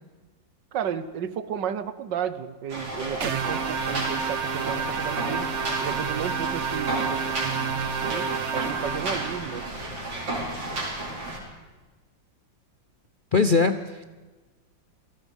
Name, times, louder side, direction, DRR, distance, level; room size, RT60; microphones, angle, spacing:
voice 1, 0.7-5.5 5.8-9.7, right 8 dB, 70° right, 14 dB, 1.6 m, -33 dB
sound 1, 2.7-11.4, right 2 dB, 90° right, 5.3 m, -33 dB
sound 2, 3.2-9.7, right 6 dB, 45° right, 1.1 m, -30 dB
voice 2, 13.3-14.1, left 4 dB, 60° left, 9 dB, 0.5 m, -22 dB
27.5 x 19.0 x 5.4 m, 1.3 s
omnidirectional pair, 2.0 m